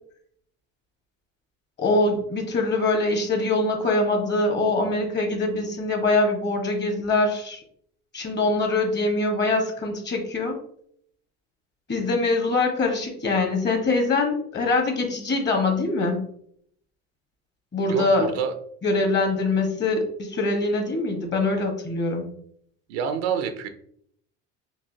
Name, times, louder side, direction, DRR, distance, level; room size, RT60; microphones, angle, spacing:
voice 1, 1.8-7.6 8.1-10.6 11.9-16.3 17.7-18.3 18.8-22.3, left 2 dB, 35° left, 3 dB, 1.4 m, -23 dB
voice 2, 17.9-18.5 22.9-23.7, right 7 dB, 90° right, 7 dB, 0.6 m, -27 dB
4.6 x 2.7 x 2.8 m, 0.65 s
supercardioid pair, 85°, 30 cm